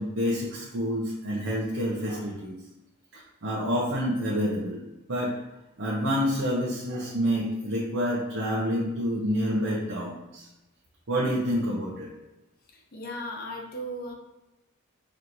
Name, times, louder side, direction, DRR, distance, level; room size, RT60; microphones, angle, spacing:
voice 1, 0.0-2.5 3.4-4.8 5.1-5.3 5.8-10.4 11.1-12.1, equal, 60° right, -6 dB, 0.7 m, -28 dB
voice 2, 12.9-14.1, equal, 45° left, 1 dB, 0.6 m, -36 dB
4.4 x 3.1 x 2.6 m, 0.99 s
head